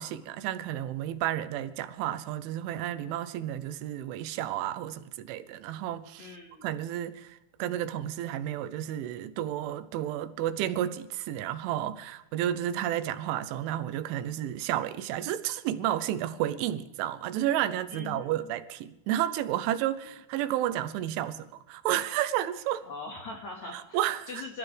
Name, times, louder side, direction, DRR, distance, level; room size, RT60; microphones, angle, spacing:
voice 1, 0.0-6.3 6.6-22.8 23.7-24.3, right 12 dB, 80° right, 3.2 m, -31 dB
voice 2, 6.2-6.8 17.9-18.5 22.8-24.0 24.3-24.6, left 3 dB, 55° left, 2.1 m, -41 dB
26.5 x 14.5 x 3.4 m
omnidirectional pair, 5.6 m